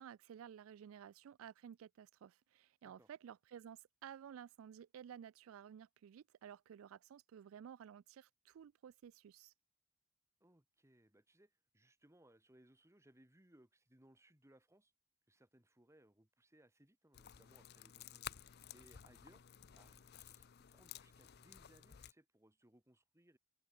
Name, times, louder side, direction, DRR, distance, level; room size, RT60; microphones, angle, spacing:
voice 1, 0.0-9.5, right 8 dB, 70° right, 0.3 m, -54 dB
voice 2, 10.4-14.9 15.3-18.3 18.7-19.4 19.7-23.4, right 1 dB, 15° right, 1.6 m, -68 dB
sound 1, 17.1-22.1, left 10 dB, 50° left, 0.5 m, -54 dB
head